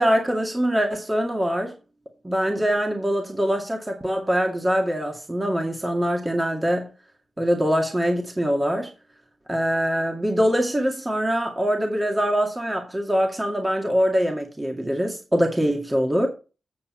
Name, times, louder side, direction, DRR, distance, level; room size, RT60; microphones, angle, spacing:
voice 1, 0.0-1.7 2.2-6.9 7.4-8.9 9.5-16.3, equal, 20° right, 2.1 m, -23 dB
8.5 x 6.9 x 4.5 m
cardioid pair, 55°, 0 cm